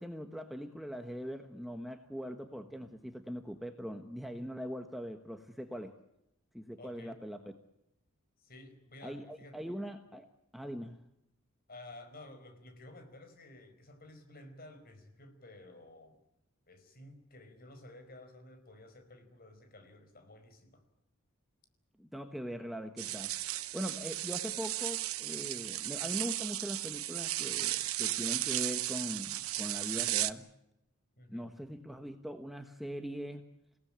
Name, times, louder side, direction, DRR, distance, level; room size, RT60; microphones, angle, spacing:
voice 1, 0.0-6.0 6.5-7.4 9.0-10.3 10.5-11.0 22.0-30.5 31.3-33.5, equal, ahead, 6 dB, 1.3 m, -41 dB
voice 2, 6.8-7.2 8.4-9.6 11.7-16.2 16.7-20.8 31.2-31.5, left 2 dB, 45° left, 7 dB, 4.9 m, -53 dB
sound 1, 23.0-30.3, right 15 dB, 80° right, 1.0 m, -35 dB
28.5 x 18.0 x 8.8 m, 0.84 s
head